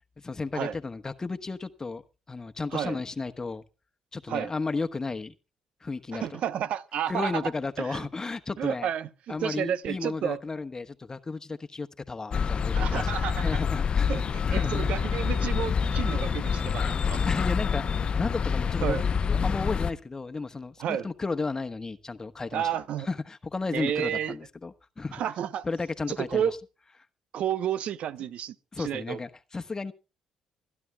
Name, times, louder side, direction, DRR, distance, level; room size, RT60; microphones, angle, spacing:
voice 1, 0.2-2.0 2.3-3.6 4.1-5.3 5.8-6.4 7.1-8.9 9.3-14.2 14.5-14.9 17.3-22.7 23.0-25.2 25.6-26.5 28.7-29.9, left 3 dB, 30° left, 1.2 m, -33 dB
voice 2, 6.1-7.5 7.8-8.1 8.6-10.4 12.8-13.6 14.1-17.2 18.8-19.0 20.8-21.1 22.5-23.1 23.7-24.4 25.1-25.7 26.1-26.6 27.3-29.2, right 9 dB, 65° right, 0.9 m, -31 dB
sound 1, 12.3-19.9, left 6 dB, 50° left, 0.8 m, -27 dB
25.5 x 11.0 x 2.3 m
hypercardioid pair, 55°, 2 cm